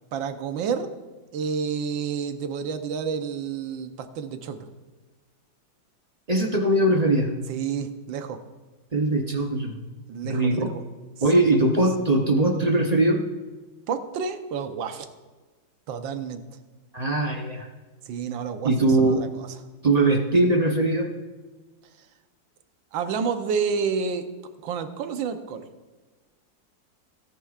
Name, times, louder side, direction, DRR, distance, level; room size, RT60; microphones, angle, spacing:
voice 1, 0.1-0.9 1.3-4.7 7.5-8.4 10.1-10.8 13.9-15.1 15.9-16.4 18.1-18.7 19.0-19.5 22.9-24.3 24.6-25.7, right 6 dB, 80° right, 8 dB, 1.6 m, -29 dB
voice 2, 6.3-7.3 8.9-9.7 10.2-10.7 11.2-13.2 16.9-17.7 18.6-19.2 19.8-21.1, right 2 dB, 45° right, 3 dB, 0.5 m, -21 dB
17.0 x 10.0 x 2.4 m, 1.3 s
omnidirectional pair, 2.1 m